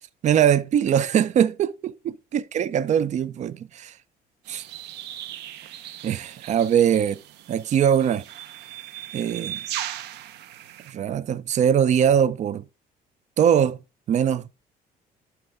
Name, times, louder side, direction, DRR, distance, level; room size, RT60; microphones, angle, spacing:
voice 1, 0.2-4.0 4.5-4.7 6.0-7.2 7.5-8.3 9.1-9.7 10.9-12.6 13.4-13.8 14.1-14.5, right 9 dB, 45° right, 0.5 m, -22 dB
sound 1, 4.4-10.9, right 12 dB, 85° right, 0.7 m, -38 dB
11.0 x 4.6 x 3.4 m
cardioid pair, 110°, 17 cm